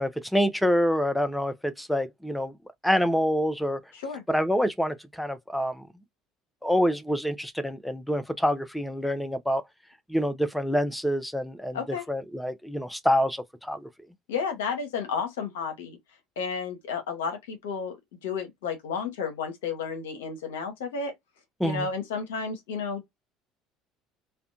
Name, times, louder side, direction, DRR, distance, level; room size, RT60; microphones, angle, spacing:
voice 1, 0.0-2.6 2.8-3.8 4.3-5.9 6.6-9.6 10.1-11.8 12.1-13.9 21.6-21.9, equal, 5° left, 0.4 m, -26 dB
voice 2, 3.9-4.2 11.7-12.1 14.3-16.0 16.4-21.1 21.6-23.1, left 5 dB, 80° left, 0.7 m, -32 dB
2.5 x 2.1 x 2.5 m
hypercardioid pair, 65°, 0 cm